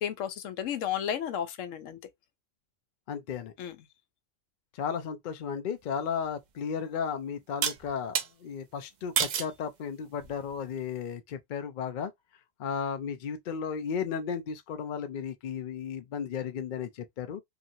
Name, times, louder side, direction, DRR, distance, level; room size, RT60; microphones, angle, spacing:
voice 1, 0.0-2.0 3.6-3.8, left 9 dB, 80° left, 1.0 m, -33 dB
voice 2, 3.1-3.5 4.8-12.1 12.6-17.4, left 7 dB, 65° left, 0.5 m, -34 dB
sound 1, 6.2-6.3 7.6-8.3 9.2-9.6 10.2-10.6, right 8 dB, 75° right, 0.4 m, -29 dB
2.9 x 2.7 x 2.6 m
omnidirectional pair, 1.3 m